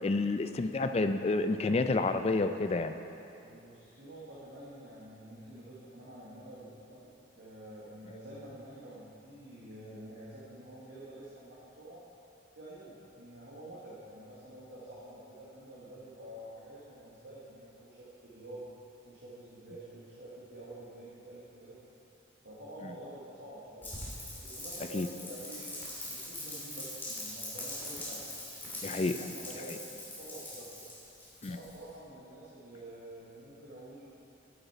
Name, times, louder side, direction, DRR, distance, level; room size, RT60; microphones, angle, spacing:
voice 1, 0.0-3.0 24.9-25.1 28.8-29.3 31.4-31.6, left 3 dB, 35° left, 8 dB, 0.3 m, -29 dB
voice 2, 3.4-7.0 7.3-12.0 12.5-18.6 19.0-21.8 22.4-23.9 24.4-25.8 26.0-28.2 28.7-29.8 30.1-30.9 31.5-34.0, right 1 dB, 65° right, -8 dB, 1.6 m, -48 dB
Rain, 23.8-31.9, left 1 dB, 10° left, 2.3 m, -42 dB
10.0 x 8.0 x 4.3 m, 2.7 s
head